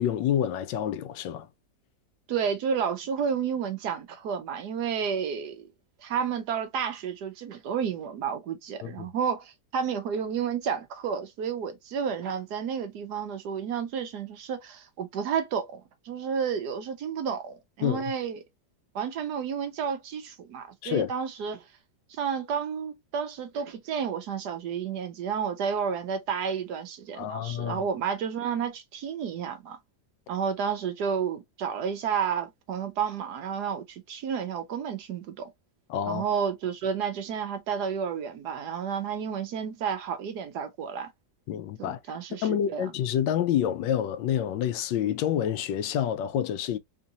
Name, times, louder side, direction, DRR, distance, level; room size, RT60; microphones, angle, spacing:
voice 1, 0.0-1.5 8.8-9.1 17.8-18.0 20.8-21.1 27.2-27.9 35.9-36.2 41.5-42.0 42.4-46.8, left 10 dB, 85° left, 1.3 m, -28 dB
voice 2, 2.3-5.6 6.0-18.4 18.9-21.6 22.1-29.8 30.3-35.5 36.1-41.1 41.8-42.9, right 7 dB, 70° right, 1.3 m, -31 dB
3.7 x 2.5 x 2.7 m
omnidirectional pair, 1.9 m